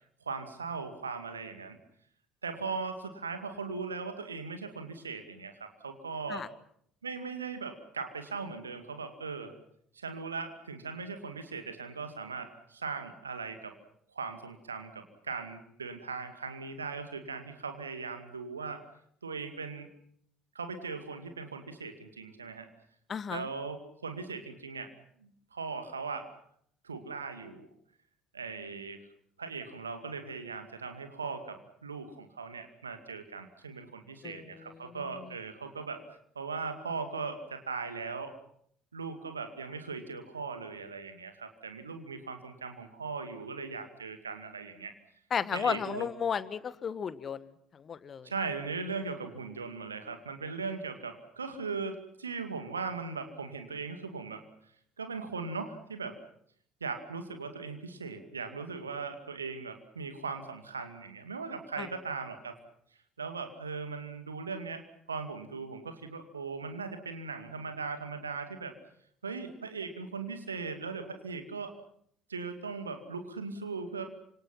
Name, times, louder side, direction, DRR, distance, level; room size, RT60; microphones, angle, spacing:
voice 1, 0.2-1.8 2.4-6.5 7.0-9.6 9.9-13.8 14.1-18.9 19.2-19.9 20.5-22.7 23.3-24.9 25.2-26.3 26.8-27.7 28.3-29.0 29.4-36.0 36.4-38.4 38.9-44.9 45.5-46.1 48.2-54.5 55.0-56.2 56.8-62.6 63.2-68.8 69.2-71.7 72.3-74.1, right 4 dB, 80° right, 8 dB, 2.2 m, -39 dB
voice 2, 23.1-23.5 34.2-35.3 45.3-48.3 61.8-61.9, left 7 dB, 35° left, 16 dB, 1.4 m, -34 dB
27.5 x 26.0 x 5.8 m, 0.68 s
figure-of-eight pair, 55°, 0 cm